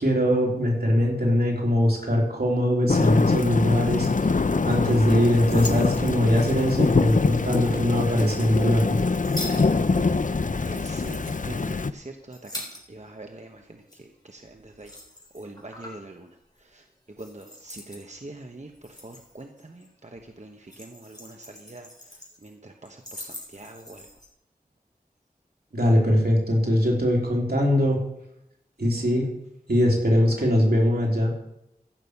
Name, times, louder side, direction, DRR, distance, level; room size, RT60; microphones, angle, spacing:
voice 1, 0.0-4.1 4.6-9.0 25.7-28.0 28.8-29.3 29.7-31.3, equal, 85° right, -2 dB, 3.5 m, -21 dB
Thunder / Rain, 2.9-11.9, left 4 dB, 55° left, 0.6 m, -24 dB
sound 1, 5.2-7.6 8.3-13.3 13.5-16.1 16.4-16.7 17.2-18.0 18.6-19.9 20.1-22.5 22.8-24.3, left 1 dB, 25° left, 3.6 m, -43 dB
voice 2, 9.4-10.2 10.7-14.9 15.3-16.3 16.6-16.8 17.2-24.1, right 2 dB, 50° right, 4 dB, 1.1 m, -44 dB
15.0 x 6.3 x 7.1 m, 0.81 s
wide cardioid pair, 40°, 16 cm